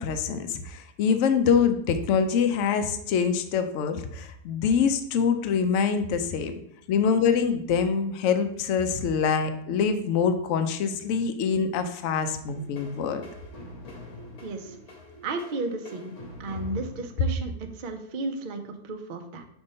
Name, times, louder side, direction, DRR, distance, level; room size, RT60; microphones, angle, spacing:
voice 1, 0.0-6.5 6.9-13.2, left 6 dB, 75° left, 7 dB, 0.7 m, -25 dB
sound 1, 12.5-17.9, left 1 dB, 60° left, 1.6 m, -45 dB
voice 2, 14.4-14.8 15.2-16.1 16.4-19.4, right 2 dB, 80° right, 5 dB, 0.4 m, -33 dB
5.2 x 3.4 x 5.3 m, 0.73 s
omnidirectional pair, 1.8 m